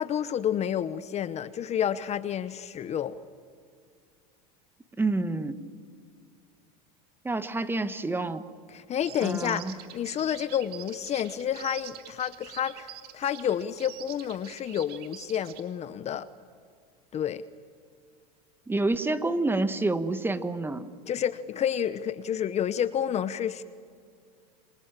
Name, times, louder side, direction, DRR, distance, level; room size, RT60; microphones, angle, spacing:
voice 1, 0.0-3.2 8.7-16.3 17.1-17.4 21.1-23.6, left 9 dB, 35° left, 14 dB, 0.9 m, -30 dB
voice 2, 5.0-5.6 7.2-8.4 9.2-9.7 18.7-20.9, right 2 dB, 10° right, 11 dB, 1.3 m, -28 dB
sound 1, 9.0-15.6, right 12 dB, 50° right, 2.2 m, -46 dB
27.0 x 24.5 x 7.5 m, 2.1 s
supercardioid pair, 110°, 20 cm